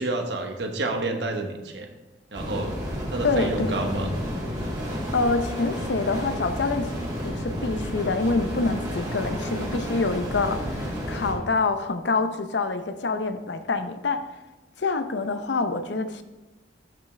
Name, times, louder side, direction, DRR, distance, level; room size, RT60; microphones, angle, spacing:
voice 1, 0.0-1.9 2.3-2.7 3.1-4.1, right 2 dB, 75° right, 4 dB, 1.1 m, -29 dB
sound 1, 2.3-11.3, equal, 25° right, 2.5 m, -31 dB
voice 2, 3.2-3.8 5.1-6.9 7.2-14.3 14.8-16.2, left 3 dB, 80° left, 9 dB, 0.7 m, -26 dB
12.5 x 5.6 x 3.3 m, 1.1 s
head